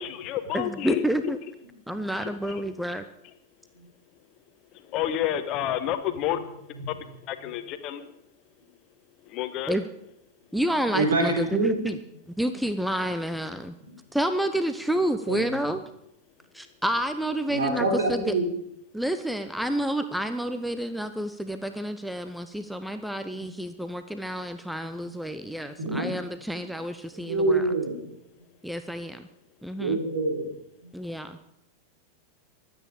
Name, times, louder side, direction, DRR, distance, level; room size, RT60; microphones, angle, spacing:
voice 1, 0.0-1.0 2.2-2.6 4.8-8.2 9.2-9.8, left 11 dB, 40° left, 10 dB, 1.2 m, -30 dB
voice 2, 0.5-1.4 1.9-3.0 9.7-9.9 10.5-12.0 12.3-13.7 14.1-15.8 16.5-18.3 18.9-27.7 28.6-29.3 29.6-30.0 30.9-31.5, right 1 dB, ahead, 9 dB, 0.7 m, -29 dB
voice 3, 10.9-11.8 13.8-13.9 15.3-15.4 17.5-18.5 25.8-26.2 27.2-28.0 29.8-30.5, right 2 dB, 65° right, 3 dB, 3.8 m, -25 dB
23.5 x 8.8 x 5.0 m, 0.78 s
figure-of-eight pair, 90°, 0 cm